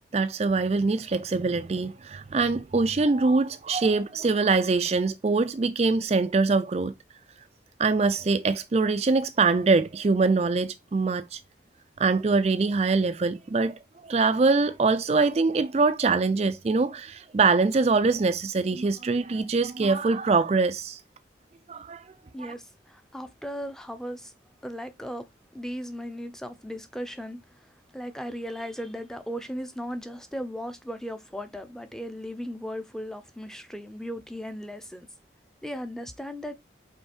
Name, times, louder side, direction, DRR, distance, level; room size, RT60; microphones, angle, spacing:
voice 1, 0.1-6.9 7.8-11.4 12.0-21.0 21.7-22.0, right 4 dB, 35° right, 0.4 m, -23 dB
voice 2, 22.3-24.3 24.6-25.3 25.5-35.1 35.6-36.6, equal, 5° left, 0.6 m, -37 dB
5.5 x 4.2 x 4.3 m
head